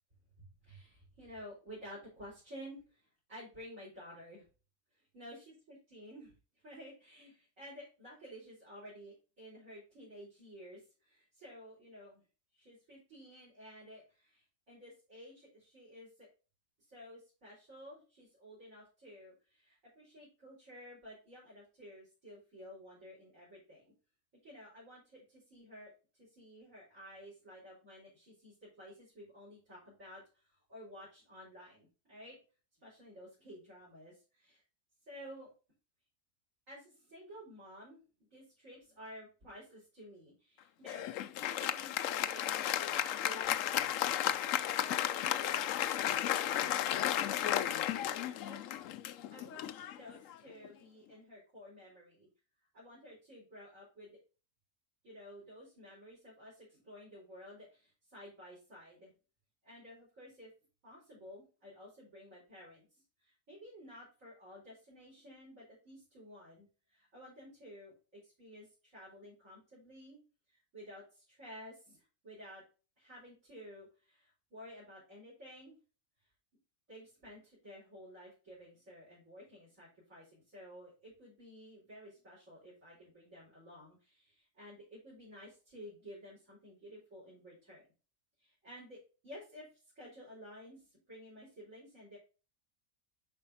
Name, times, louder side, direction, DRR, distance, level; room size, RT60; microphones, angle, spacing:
voice 1, 0.4-4.4 5.1-6.3 6.6-12.2 12.5-16.3 16.9-23.9 24.4-32.4 32.8-34.6 35.1-35.5 36.7-38.0 38.3-41.1 41.5-43.7 44.3-46.8 47.0-48.9 49.3-52.3 52.7-54.1 55.0-59.1 59.6-60.5 60.8-62.9 63.2-70.2 70.5-72.6 73.0-75.8 76.9-87.8 88.4-89.7 90.0-92.2, equal, 75° right, -7 dB, 5.2 m, -53 dB
Applause, 40.9-50.7, left 11 dB, 75° left, 0.9 m, -34 dB
10.0 x 5.2 x 2.8 m, 0.34 s
omnidirectional pair, 1.4 m